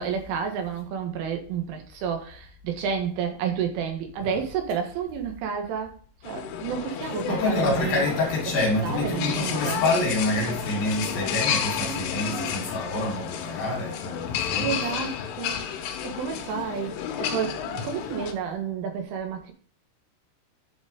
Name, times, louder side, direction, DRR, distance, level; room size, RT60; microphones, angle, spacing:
voice 1, 0.0-6.0 6.2-8.0 8.8-9.8 11.8-12.0 12.3-12.5 14.6-15.6 16.0-19.5, right 7 dB, 75° right, 4.0 m, -30 dB
sound 1, 6.2-18.3, left 9 dB, 80° left, 3.6 m, -31 dB
voice 2, 7.3-14.9, left 2 dB, 50° left, 4.0 m, -27 dB
10.5 x 5.3 x 5.2 m
omnidirectional pair, 5.8 m